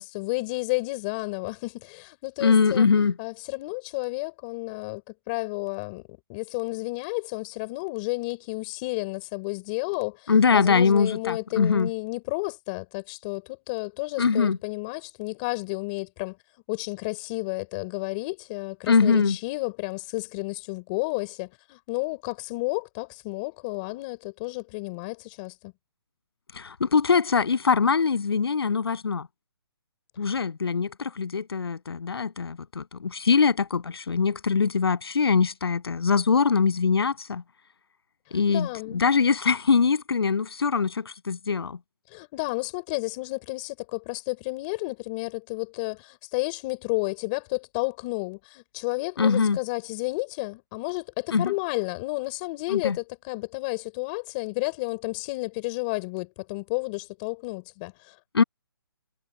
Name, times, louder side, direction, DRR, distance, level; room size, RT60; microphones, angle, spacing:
voice 1, 0.0-5.0 5.3-6.0 6.3-16.4 16.7-25.7 30.3-30.4 38.3-39.0 42.1-58.2, left 26 dB, 20° left, 4.5 m, -31 dB
voice 2, 2.4-3.1 10.3-11.9 14.2-14.6 18.9-19.4 26.5-29.3 30.2-37.4 38.3-41.8 49.2-49.6 51.3-51.5 52.7-53.0 58.3-58.4, left 5 dB, 70° left, 8.0 m, -22 dB
hypercardioid pair, 170°, 14 cm